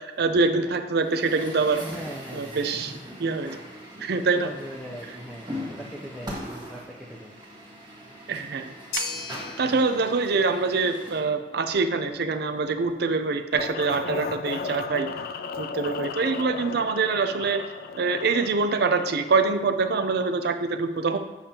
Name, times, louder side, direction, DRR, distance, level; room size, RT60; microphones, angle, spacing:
voice 1, 0.0-1.8 2.3-2.9 3.2-3.6 4.0-4.5 8.3-9.0 9.6-15.1 15.6-17.6 17.9-21.2, right 4 dB, 65° right, 8 dB, 0.5 m, -25 dB
Truck, 1.0-11.2, equal, 25° right, 1.3 m, -40 dB
voice 2, 1.8-2.9 4.3-6.8 7.1-7.4, equal, ahead, -4 dB, 0.5 m, -40 dB
sound 1, 8.9-17.3, left 3 dB, 70° left, 1.6 m, -41 dB
sound 2, 13.5-19.5, left 5 dB, 55° left, 0.3 m, -35 dB
7.2 x 6.6 x 2.9 m, 1.2 s
head